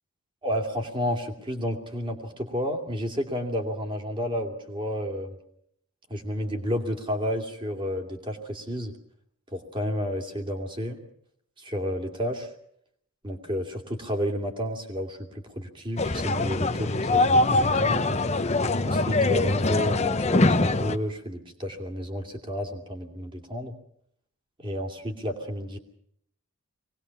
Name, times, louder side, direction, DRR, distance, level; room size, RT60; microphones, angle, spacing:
voice 1, 0.4-5.3 6.1-8.9 9.5-11.0 11.6-12.5 13.2-18.0 18.9-23.7 24.6-25.8, equal, 20° right, 4 dB, 2.7 m, -31 dB
sound 1, 16.0-21.0, left 2 dB, 30° left, 0.9 m, -23 dB
24.0 x 19.0 x 7.1 m, 0.69 s
head